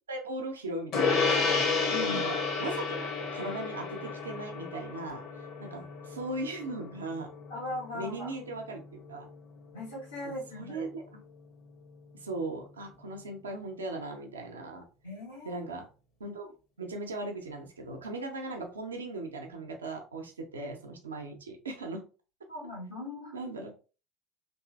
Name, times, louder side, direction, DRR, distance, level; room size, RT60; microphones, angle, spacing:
voice 1, 0.1-7.3 7.9-9.3 10.2-11.2 12.1-14.9 15.4-15.9 16.2-22.0 23.3-23.7, right 2 dB, 80° right, 3 dB, 0.6 m, -38 dB
Gong, 0.9-10.6, left 4 dB, 55° left, 1.0 m, -32 dB
voice 2, 1.9-2.3 7.5-8.3 9.7-10.8 15.0-15.6 22.5-23.3, left 1 dB, 85° left, -7 dB, 1.4 m, -39 dB
3.1 x 2.7 x 2.3 m, 0.34 s
figure-of-eight pair, 65°, 0 cm